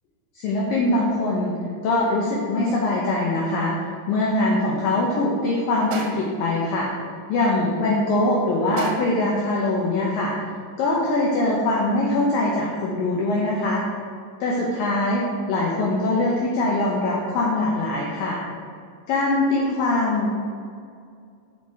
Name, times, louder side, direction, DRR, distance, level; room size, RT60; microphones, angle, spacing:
voice 1, 0.4-1.6 1.8-3.8 4.1-6.9 7.3-10.3 10.8-13.8 14.4-15.2 15.5-18.4 19.1-20.3, left 2 dB, 85° left, -4 dB, 2.0 m, -22 dB
sound 1, 5.9-6.5 8.8-9.3, right 4 dB, 75° right, 2.5 m, -32 dB
6.5 x 5.8 x 4.3 m, 2.3 s
omnidirectional pair, 5.2 m